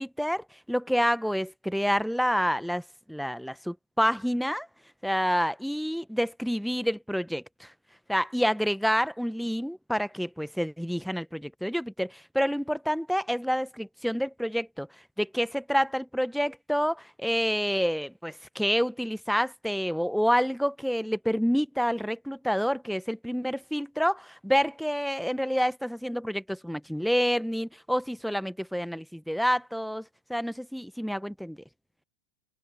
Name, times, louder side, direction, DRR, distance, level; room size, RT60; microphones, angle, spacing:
voice 1, 0.0-2.8 3.1-4.7 5.0-7.7 8.1-14.9 15.2-31.6, equal, ahead, 1.4 m, -28 dB
figure-of-eight pair, 90°, 0 cm